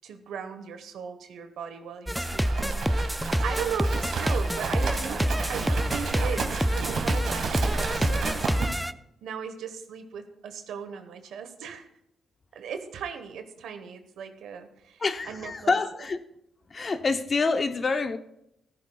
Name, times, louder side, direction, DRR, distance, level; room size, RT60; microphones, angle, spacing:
voice 1, 0.0-8.3 9.2-11.9 12.5-15.8, right 7 dB, 85° right, 1.2 m, -37 dB
sound 1, 2.1-8.9, equal, ahead, 0.4 m, -27 dB
Livestock farm animals working animals, 2.2-8.7, right 4 dB, 70° right, 1.9 m, -32 dB
voice 2, 15.0-16.2 16.7-18.2, left 4 dB, 35° left, 0.8 m, -26 dB
14.5 x 14.5 x 2.4 m
cardioid pair, 95°, 0 cm